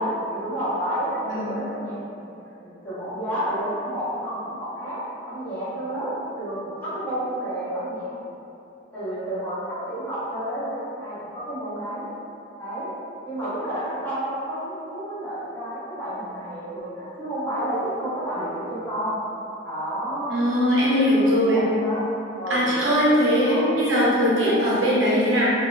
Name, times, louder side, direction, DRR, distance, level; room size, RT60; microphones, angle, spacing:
voice 1, 0.0-2.2 2.6-5.0 5.3-8.1 8.9-12.1 12.6-12.9 13.2-19.2 19.6-20.5 20.8-20.9 21.2-22.0 22.3-22.8 23.4-23.7, right 1 dB, 10° left, -13 dB, 0.9 m, -30 dB
voice 2, 1.3-1.6 20.3-21.6 22.5-25.5, equal, 85° right, -8 dB, 0.7 m, -20 dB
3.6 x 2.0 x 2.4 m, 2.8 s
head